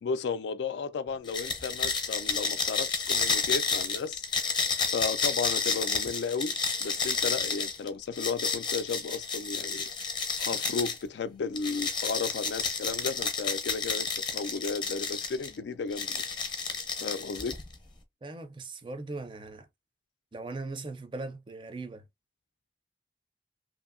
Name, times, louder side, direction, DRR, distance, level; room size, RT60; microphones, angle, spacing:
voice 1, 0.0-4.2 4.9-6.5 6.8-9.9 10.4-16.2 17.0-17.6, left 5 dB, 80° left, 0.4 m, -34 dB
sound 1, 1.3-11.0 11.6-15.5 15.9-17.7, left 5 dB, 25° left, 0.6 m, -31 dB
voice 2, 18.2-19.7 20.3-22.1, right 3 dB, 25° right, 0.4 m, -39 dB
2.7 x 2.6 x 2.5 m
head